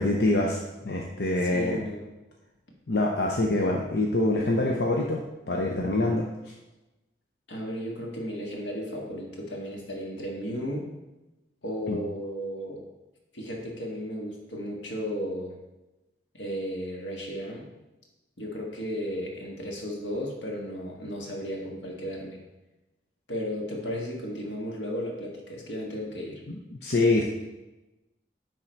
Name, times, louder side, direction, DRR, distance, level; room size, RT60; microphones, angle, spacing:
voice 1, 0.0-1.8 2.9-5.2 5.5-6.3 11.9-12.0 26.5-27.2, left 2 dB, 65° left, -1 dB, 0.8 m, -25 dB
voice 2, 1.4-2.1 7.5-10.9 11.6-12.9 13.3-15.6 16.3-17.7 18.4-22.4 23.3-26.4, equal, 90° left, -1 dB, 1.8 m, -34 dB
9.8 x 3.8 x 4.5 m, 1.0 s
head